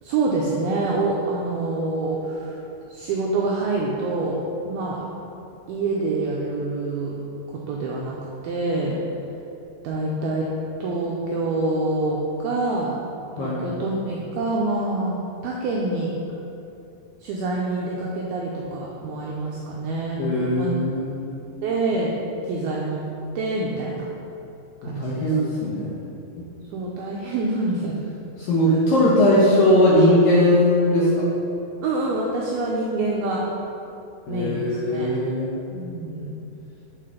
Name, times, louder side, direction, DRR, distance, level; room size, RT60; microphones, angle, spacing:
voice 1, 0.0-2.6 2.9-5.0 5.7-7.1 7.5-8.2 8.4-9.0 9.8-10.5 10.8-12.9 13.4-15.2 15.4-16.1 17.2-20.7 21.6-22.1 22.5-23.0 23.4-24.1 24.8-25.3 26.7-28.0 30.0-30.2 31.8-33.4 34.3-35.1 35.7-36.4, right 2 dB, 90° right, -3 dB, 2.1 m, -26 dB
voice 2, 20.2-21.4 24.8-25.9 26.4-26.5 28.4-31.3 34.3-35.6, left 1 dB, 75° left, -6 dB, 2.2 m, -19 dB
7.6 x 4.5 x 5.0 m, 2.8 s
omnidirectional pair, 5.1 m